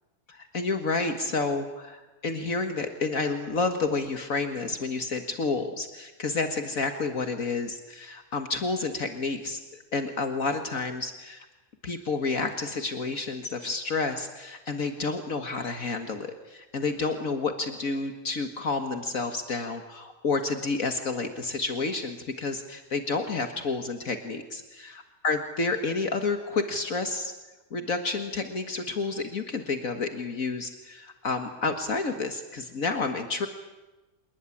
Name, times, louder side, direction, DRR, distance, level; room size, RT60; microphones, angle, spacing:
voice 1, 0.3-11.5 11.8-27.3 27.7-33.5, left 3 dB, 60° left, 6 dB, 2.1 m, -30 dB
27.0 x 20.0 x 10.0 m, 1.1 s
omnidirectional pair, 1.6 m